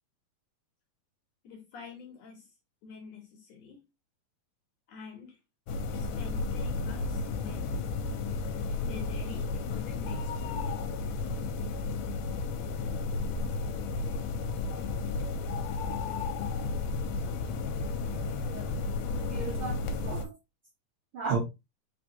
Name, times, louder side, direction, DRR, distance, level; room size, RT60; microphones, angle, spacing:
voice 1, 1.4-2.5 2.8-3.8 4.9-5.4 6.0-7.8 8.8-10.8, left 5 dB, 70° left, 1.7 m, -48 dB
sound 1, 5.7-20.2, left 3 dB, 90° left, 2.2 m, -33 dB
voice 2, 18.2-18.7 19.2-20.3 21.1-21.4, right 5 dB, 70° right, 1.2 m, -35 dB
4.7 x 3.5 x 2.8 m
omnidirectional pair, 3.7 m